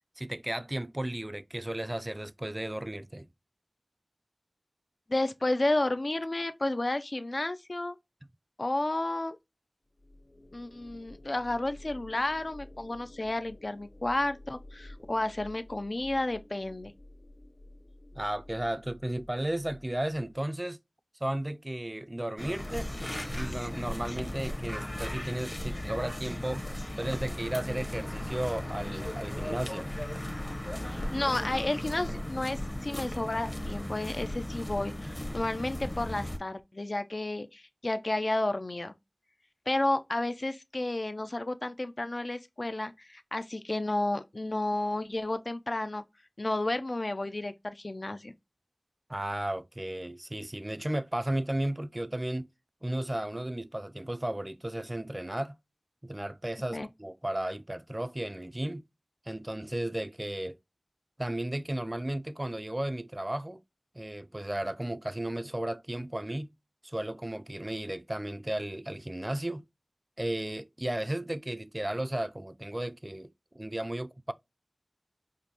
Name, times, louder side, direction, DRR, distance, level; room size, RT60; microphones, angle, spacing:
voice 1, 0.2-3.3 18.1-20.8 21.2-22.9 23.4-26.6 27.0-29.9 49.1-52.5 52.8-55.6 56.0-58.9 59.3-60.6 61.2-63.6 63.9-66.5 66.8-69.7 70.2-74.3, right 1 dB, 30° right, 0.3 m, -34 dB
voice 2, 5.1-8.0 8.6-9.4 10.5-16.9 30.9-38.9 39.7-46.0 46.4-48.3 56.7-56.9, left 2 dB, 65° left, 0.4 m, -32 dB
sound 1, 9.9-20.4, left 1 dB, 90° left, 1.4 m, -51 dB
sound 2, 22.4-36.4, left 1 dB, 35° left, 0.8 m, -36 dB
4.9 x 2.1 x 2.8 m
wide cardioid pair, 40°, 0 cm